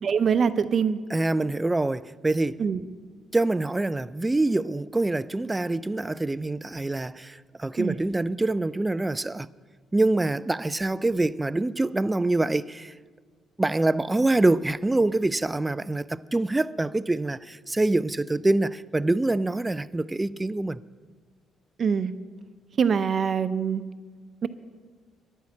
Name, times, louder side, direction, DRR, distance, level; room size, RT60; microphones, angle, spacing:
voice 1, 0.0-1.0 2.6-2.8 7.8-8.0 21.8-22.1 22.8-23.8 24.4-24.5, right 6 dB, 40° right, 0.7 m, -24 dB
voice 2, 1.1-2.6 3.3-9.5 9.9-12.9 13.6-20.8, right 2 dB, 10° right, 0.3 m, -25 dB
11.0 x 10.0 x 8.7 m
cardioid pair, 135°, 0 cm